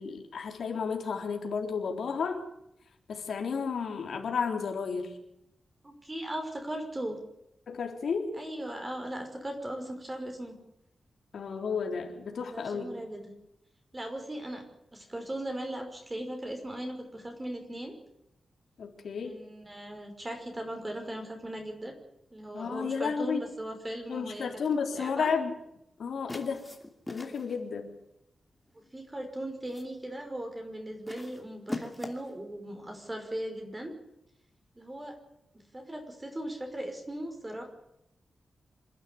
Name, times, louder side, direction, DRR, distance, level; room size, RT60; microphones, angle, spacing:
voice 1, 0.0-2.4 3.1-5.2 7.7-8.4 11.3-12.9 18.8-19.4 22.5-23.4 24.1-25.5 26.0-26.6 27.1-28.0, left 5 dB, 80° left, 3 dB, 3.8 m, -32 dB
voice 2, 5.8-7.2 8.3-10.6 12.4-13.2 13.9-14.6 14.9-17.9 19.2-21.9 22.3-24.5 24.9-25.3 28.8-33.9 34.7-35.2 35.7-37.6, right 1 dB, 20° right, 4 dB, 5.5 m, -38 dB
sound 1, 24.5-24.9 26.3-27.6 28.7-29.0 29.4-30.0 31.1-32.4, left 1 dB, 10° left, 2.7 m, -42 dB
26.5 x 12.0 x 9.9 m, 0.84 s
wide cardioid pair, 135°, 0 cm